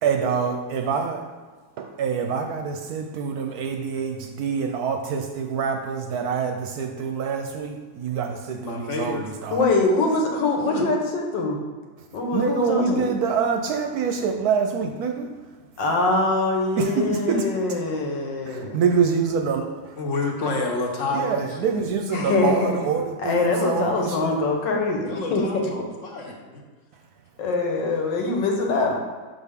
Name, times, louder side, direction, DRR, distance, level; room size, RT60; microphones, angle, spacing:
voice 1, 0.0-1.2 1.8-9.2 9.4-9.7 12.3-15.3 16.8-17.5 18.4-19.9 21.1-24.4, right 6 dB, 70° right, 4 dB, 1.0 m, -25 dB
voice 2, 8.5-9.3 10.7-10.8 20.0-21.7 25.0-26.6, left 2 dB, 50° left, 1 dB, 1.1 m, -29 dB
voice 3, 9.5-11.6 12.1-13.2 15.8-18.8 22.1-22.7 23.2-25.4 27.4-29.0, left 3 dB, 85° left, 1 dB, 1.7 m, -23 dB
6.2 x 5.6 x 3.6 m, 1.4 s
omnidirectional pair, 1.9 m